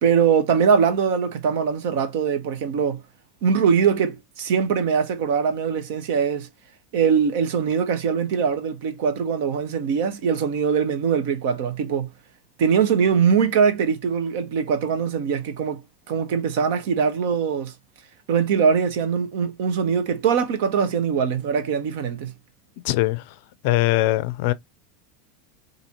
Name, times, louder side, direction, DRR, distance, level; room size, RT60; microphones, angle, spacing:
voice 1, 0.0-3.0 3.4-6.5 6.9-12.1 12.6-15.8 16.1-17.7 18.3-22.3, right 6 dB, 65° right, 0.8 m, -22 dB
voice 2, 22.8-23.2 23.6-24.5, left 17 dB, 60° left, 0.4 m, -21 dB
4.1 x 2.6 x 2.9 m
hypercardioid pair, 85°, 0 cm